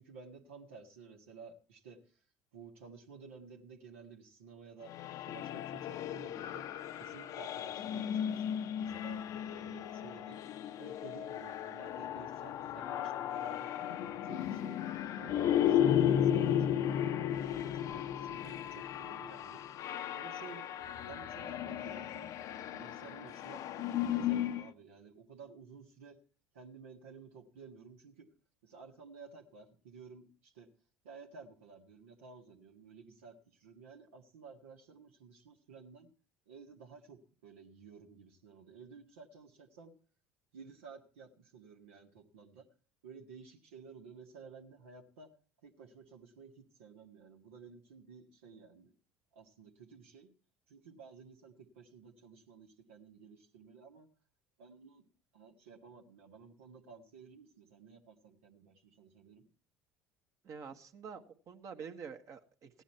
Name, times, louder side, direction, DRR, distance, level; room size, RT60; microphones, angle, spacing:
voice 1, 0.0-2.2 2.5-5.0 5.3-10.4 10.8-14.9 15.2-19.6 20.1-20.7 21.1-22.3 22.7-26.2 26.5-28.3 28.6-30.7 31.0-36.1 36.5-39.9 40.5-42.7 43.0-45.3 45.6-48.9 49.3-50.3 50.7-54.1 54.6-55.1 55.3-59.5, right 5 dB, 85° right, 1 dB, 1.8 m, -54 dB
sound 1, 4.9-24.7, left 10 dB, 55° left, 0.7 m, -34 dB
voice 2, 60.4-62.7, right 6 dB, 50° right, 5 dB, 1.5 m, -47 dB
16.0 x 10.0 x 4.5 m, 0.41 s
hypercardioid pair, 70°, 7 cm